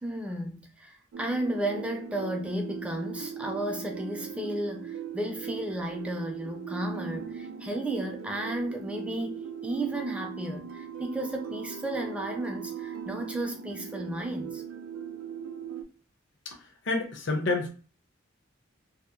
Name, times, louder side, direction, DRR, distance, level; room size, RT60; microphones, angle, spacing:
voice 1, 0.0-14.6, right 1 dB, 5° right, 0.3 m, -33 dB
sound 1, 1.1-15.8, right 8 dB, 85° right, 0.3 m, -39 dB
voice 2, 16.5-17.7, left 2 dB, 60° left, 0.5 m, -29 dB
2.7 x 2.1 x 2.4 m
head